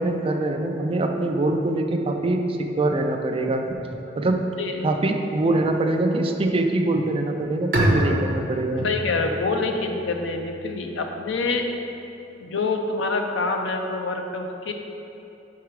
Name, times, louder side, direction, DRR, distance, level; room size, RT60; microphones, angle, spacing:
voice 1, 0.0-3.7 4.2-4.4 4.8-8.9, right 2 dB, 30° right, 3 dB, 0.4 m, -23 dB
Bowed string instrument, 7.7-11.2, right 1 dB, 55° right, 0.9 m, -27 dB
voice 2, 8.8-11.7 12.4-14.7, left 3 dB, 70° left, 3 dB, 0.5 m, -26 dB
4.8 x 4.6 x 4.7 m, 2.9 s
head